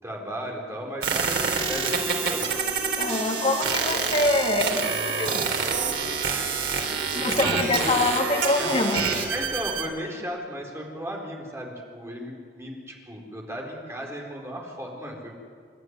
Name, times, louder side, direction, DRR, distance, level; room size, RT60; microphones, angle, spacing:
voice 1, 0.0-2.5 7.1-7.9 8.6-8.7 9.3-15.4, equal, 15° right, 0 dB, 4.2 m, -35 dB
sound 1, 1.0-9.9, right 5 dB, 80° right, 3.6 m, -27 dB
sound 2, 1.3-9.2, left 1 dB, 55° left, 3.3 m, -38 dB
voice 2, 3.0-5.4 7.1-9.1, left 2 dB, 35° left, 0 dB, 2.8 m, -25 dB
28.5 x 12.0 x 9.6 m, 2.1 s
head